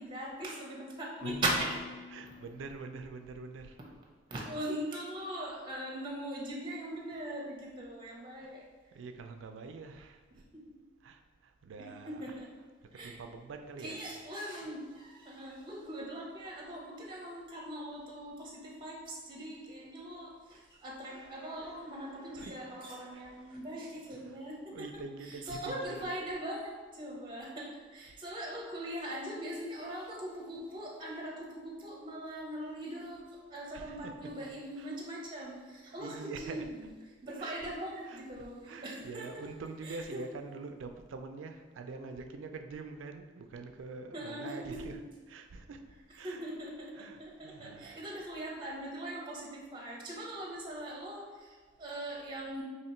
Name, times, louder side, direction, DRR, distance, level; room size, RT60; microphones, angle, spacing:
voice 1, 0.0-1.7 2.2-2.3 4.3-8.6 10.5-10.7 11.8-12.5 12.9-13.2 13.8-24.9 25.2-33.2 33.5-36.9 37.2-39.3 39.8-40.2 44.1-44.9 46.2-52.6, right 1 dB, 25° right, -2 dB, 0.6 m, -40 dB
Marimba xylophone / Wood, 1.2-3.4, left 5 dB, 90° left, 0.4 m, -46 dB
voice 2, 2.1-3.8 4.3-4.5 8.4-8.5 8.9-10.2 11.0-12.4 13.0-14.0 22.4-22.6 23.1-23.3 24.2-24.4 24.7-25.9 28.5-28.6 30.0-30.1 33.7-34.5 34.8-34.9 36.0-36.7 37.4-37.7 38.1-45.0 45.3-45.8 46.2-46.5 47.0-48.0, right 4 dB, 75° right, 6 dB, 0.4 m, -45 dB
2.9 x 2.8 x 4.3 m, 1.4 s
head